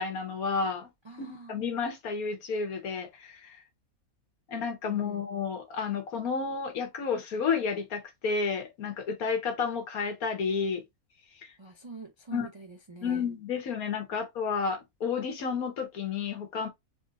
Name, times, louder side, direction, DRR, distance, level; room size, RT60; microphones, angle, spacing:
voice 1, 0.0-0.9 1.2-3.6 4.5-10.8 12.3-12.5 13.0-16.7, left 5 dB, 90° left, 1.5 m, -31 dB
voice 2, 1.0-1.5 4.8-5.3 11.6-13.2, right 3 dB, 50° right, 0.3 m, -45 dB
3.5 x 2.5 x 3.9 m
omnidirectional pair, 1.5 m